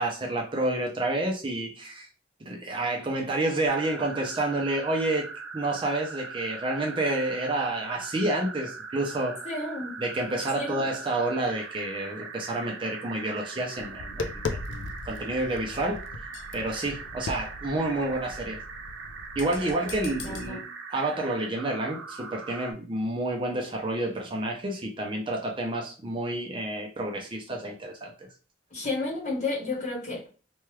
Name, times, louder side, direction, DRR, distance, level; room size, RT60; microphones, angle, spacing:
voice 1, 0.0-2.1 2.4-9.5 10.0-16.0 16.5-18.6 19.4-28.3, right 2 dB, 25° right, 0.5 m, -29 dB
sound 1, 3.7-22.7, right 4 dB, 85° right, 0.6 m, -41 dB
voice 2, 9.4-9.9 10.5-10.9 19.5-20.6 28.7-30.3, left 2 dB, 40° left, 1.0 m, -32 dB
Tap, 13.8-20.5, left 3 dB, 80° left, 0.4 m, -38 dB
3.1 x 2.2 x 3.0 m
head